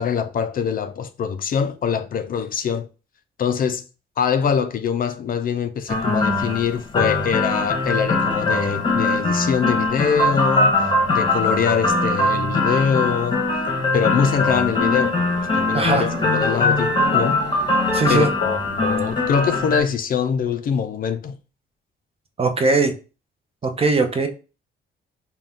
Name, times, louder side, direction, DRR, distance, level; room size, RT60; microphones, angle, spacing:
voice 1, 0.0-2.9 3.4-3.8 4.2-13.5 13.9-15.2 15.5-17.4 18.1-21.4, left 7 dB, 45° left, 0.4 m, -23 dB
sound 1, 5.9-19.8, left 2 dB, 25° left, 0.9 m, -21 dB
sound 2, 14.3-19.3, right 3 dB, 65° right, 1.1 m, -38 dB
voice 2, 15.7-16.1 17.9-18.3 22.4-22.9 23.6-24.3, right 3 dB, 30° right, 0.6 m, -19 dB
2.6 x 2.2 x 3.5 m
cardioid pair, 90°, 20 cm